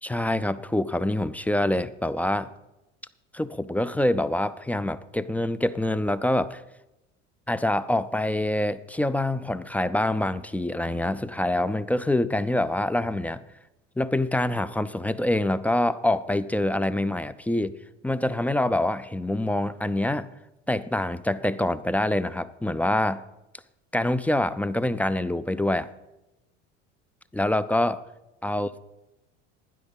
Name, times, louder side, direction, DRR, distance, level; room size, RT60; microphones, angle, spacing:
voice 1, 0.0-2.5 3.3-6.6 7.5-13.4 14.0-17.7 18.0-20.3 20.7-23.2 23.9-25.9 27.3-28.0 28.4-28.8, left 1 dB, 5° left, 0.4 m, -25 dB
12.0 x 9.9 x 5.4 m
hypercardioid pair, 70°, 36 cm